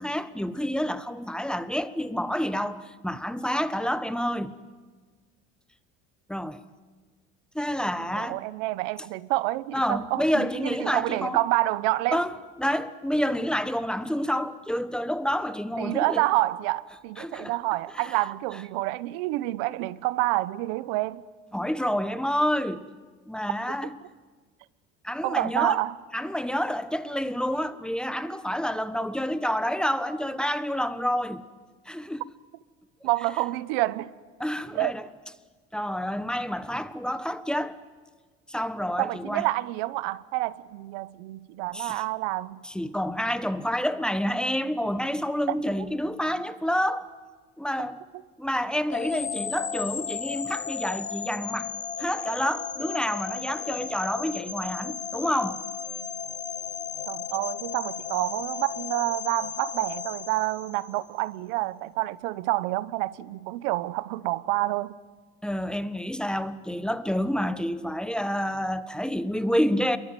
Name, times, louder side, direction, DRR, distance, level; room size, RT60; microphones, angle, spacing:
voice 1, 0.0-4.6 6.3-6.6 7.5-8.4 9.7-11.4 12.1-12.3 12.6-16.2 17.2-17.5 17.9-18.0 21.5-22.9 23.3-23.9 25.0-25.8 26.1-31.4 31.9-32.2 34.4-35.0 35.7-37.8 38.5-39.5 41.7-42.0 42.6-47.1 47.6-48.0 48.4-51.7 52.0-55.6 65.4-70.0, equal, 5° left, 1.3 m, -28 dB
voice 2, 8.1-12.2 15.8-21.2 25.2-26.0 33.0-34.1 34.7-34.9 39.0-42.6 47.8-47.9 49.1-49.2 57.1-64.9, right 18 dB, 85° right, 1.0 m, -28 dB
sound 1, 48.9-61.1, left 7 dB, 25° left, 1.2 m, -35 dB
27.5 x 22.5 x 9.2 m
supercardioid pair, 100°, 29 cm